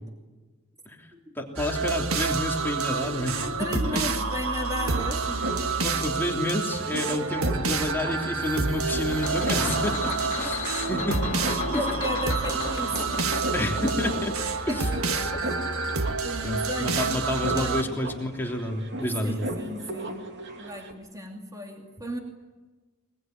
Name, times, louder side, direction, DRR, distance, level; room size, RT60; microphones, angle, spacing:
voice 1, 0.8-4.0 5.8-9.9 10.4-11.3 11.7-11.9 13.5-14.4 14.7-14.9 15.8-15.9 16.4-19.5, left 1 dB, 10° left, 0 dB, 3.1 m, -29 dB
sound 1, 1.6-17.8, right 4 dB, 75° right, 1.7 m, -28 dB
voice 2, 3.4-5.7 9.6-10.5 11.7-13.7 14.7-14.8 15.4-15.5 16.2-17.9 19.0-22.2, equal, 15° right, 2 dB, 2.7 m, -35 dB
sound 2, 3.9-4.0 4.1-20.9, right 1 dB, 55° right, 2.9 m, -38 dB
sound 3, 8.4-15.4, left 4 dB, 35° left, 3.5 m, -36 dB
23.0 x 22.0 x 9.5 m, 1.3 s
head